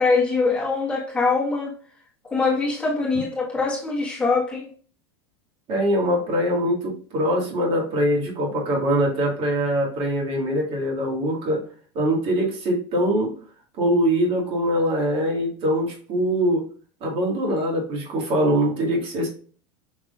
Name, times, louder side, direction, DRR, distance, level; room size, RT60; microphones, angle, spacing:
voice 1, 0.0-1.7 2.2-4.7, left 4 dB, 10° left, 1.6 m, -23 dB
voice 2, 5.7-11.7 12.0-13.3 13.8-16.7 17.0-19.3, equal, 45° right, 2.0 m, -23 dB
6.1 x 3.5 x 2.5 m
hypercardioid pair, 110°, 13 cm